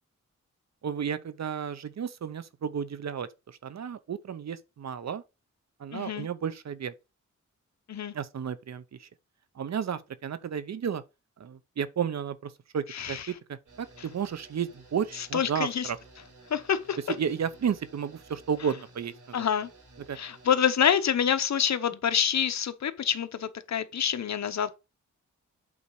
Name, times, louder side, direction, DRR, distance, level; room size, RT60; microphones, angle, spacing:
voice 1, 0.8-5.2 5.8-6.9 8.1-9.1 9.6-11.0 11.4-16.0 17.2-19.5 20.1-20.2, right 7 dB, 60° right, 0.8 m, -33 dB
voice 2, 5.9-6.3 7.9-8.1 12.9-13.3 14.0-14.1 15.1-15.9 16.5-17.1 19.3-19.7 20.1-24.7, left 8 dB, 60° left, 0.9 m, -27 dB
sound 1, 13.7-20.5, right 3 dB, 80° right, 4.4 m, -54 dB
8.5 x 4.0 x 4.8 m
cardioid pair, 85°, 31 cm